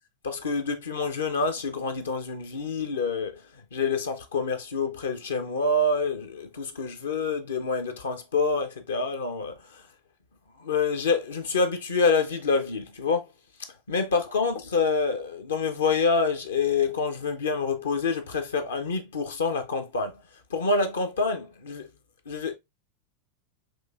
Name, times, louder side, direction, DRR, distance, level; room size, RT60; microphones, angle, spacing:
voice 1, 0.2-3.3 3.7-9.5 10.6-13.2 13.9-20.1 20.5-21.9 22.3-22.6, left 4 dB, 65° left, 0.7 m, -27 dB
6.2 x 2.7 x 2.3 m
figure-of-eight pair, 90°, 0 cm